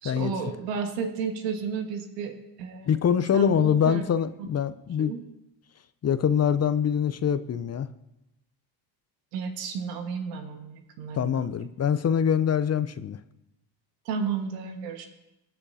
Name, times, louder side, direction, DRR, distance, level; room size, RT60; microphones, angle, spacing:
voice 1, 0.0-4.0 4.4-4.5 5.0-5.2 9.3-11.7 14.0-15.1, right 6 dB, 85° right, 5 dB, 1.6 m, -33 dB
voice 2, 2.9-5.1 6.0-7.9 11.2-13.2, left 8 dB, 30° left, 13 dB, 0.7 m, -24 dB
23.0 x 10.0 x 2.8 m, 0.91 s
hypercardioid pair, 65°, 48 cm